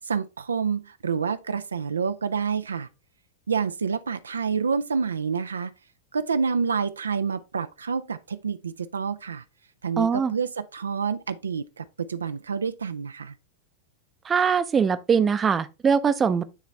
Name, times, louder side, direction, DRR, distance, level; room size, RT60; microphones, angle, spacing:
voice 1, 0.0-2.9 3.5-5.7 6.1-9.4 9.8-13.3, right 5 dB, 70° right, 0.4 m, -28 dB
voice 2, 10.0-10.3 14.2-16.4, right 6 dB, 20° right, 0.6 m, -22 dB
9.4 x 4.0 x 3.2 m
figure-of-eight pair, 90°, 0 cm